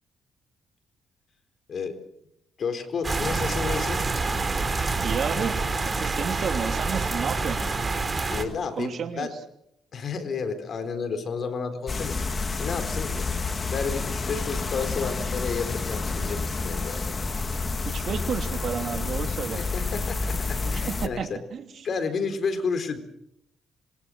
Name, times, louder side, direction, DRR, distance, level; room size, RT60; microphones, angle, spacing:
voice 1, 2.6-4.0 8.3-9.3 9.9-12.2 12.6-17.2 19.6-21.3 21.8-23.0, left 5 dB, 55° left, 9 dB, 4.2 m, -31 dB
sound 1, 3.0-8.4, right 3 dB, 25° right, 3.9 m, -27 dB
voice 2, 5.0-7.6 8.8-9.3 17.8-19.6 20.6-21.9, right 7 dB, 60° right, 6 dB, 3.1 m, -31 dB
sound 2, 11.9-21.1, left 4 dB, 30° left, 2.1 m, -29 dB
26.5 x 23.5 x 6.4 m, 0.77 s
cardioid pair, 90°, 0 cm